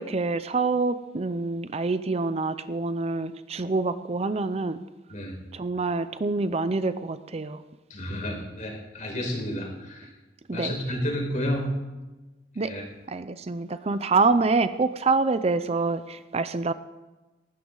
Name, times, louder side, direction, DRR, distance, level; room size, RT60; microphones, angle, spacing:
voice 1, 0.0-4.8 5.5-7.6 10.5-10.8 12.6-12.7 13.1-16.7, right 3 dB, 35° right, 0.6 m, -26 dB
voice 2, 7.9-10.1 10.5-11.7 12.6-12.8, left 1 dB, 45° left, 4.8 m, -31 dB
18.5 x 16.0 x 4.0 m
head